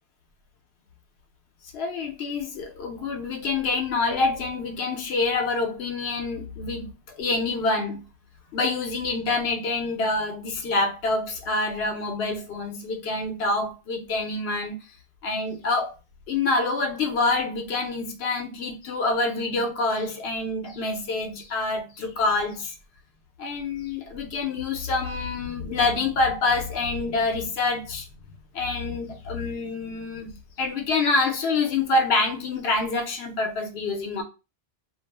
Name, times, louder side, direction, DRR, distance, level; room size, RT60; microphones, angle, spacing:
voice 1, 1.7-8.0 8.5-14.7 15.2-15.9 16.3-22.7 23.4-28.1 28.5-30.3 30.6-34.2, left 3 dB, 75° left, 0.8 m, -26 dB
2.4 x 2.0 x 3.1 m
omnidirectional pair, 1.1 m